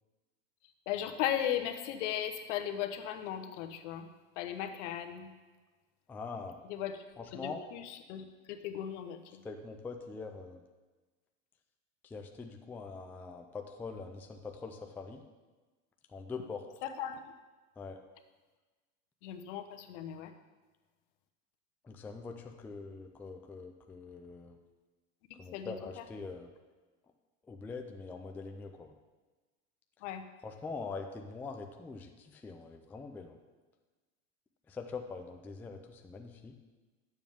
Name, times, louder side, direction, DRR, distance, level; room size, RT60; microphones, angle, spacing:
voice 1, 0.9-4.1 4.4-5.3 6.7-7.0 7.3-9.4 16.8-17.2 19.2-20.3 25.5-26.0 30.0-30.2, left 10 dB, 70° left, 7 dB, 1.0 m, -37 dB
voice 2, 6.1-6.6 7.2-7.6 9.4-10.6 12.0-15.2 16.1-16.6 17.8-18.0 21.8-24.6 25.4-26.5 27.5-28.9 30.4-33.4 34.7-36.5, left 4 dB, 5° left, 4 dB, 0.3 m, -43 dB
10.5 x 7.1 x 3.5 m, 1.3 s
supercardioid pair, 125°, 38 cm